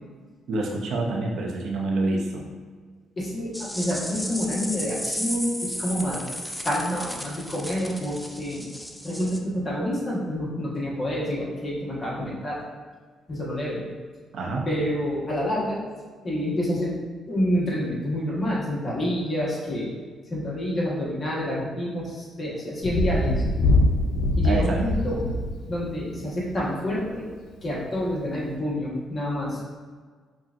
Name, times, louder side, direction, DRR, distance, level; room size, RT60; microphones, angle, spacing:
voice 1, 0.5-2.4 14.3-14.7 24.4-24.8, right 2 dB, 65° right, -1 dB, 0.7 m, -27 dB
voice 2, 3.2-8.7 9.0-12.6 13.3-13.9 14.7-15.8 16.2-17.0 17.2-23.4 24.4-25.2 25.7-27.3 27.6-29.6, equal, 35° left, -6 dB, 1.2 m, -28 dB
sound 1, 3.5-9.4, equal, 5° left, 0.4 m, -34 dB
Thunder, 22.8-26.7 28.0-28.1, left 1 dB, 85° left, 0.3 m, -23 dB
5.6 x 2.4 x 2.5 m, 1.5 s
cardioid pair, 90°, 0 cm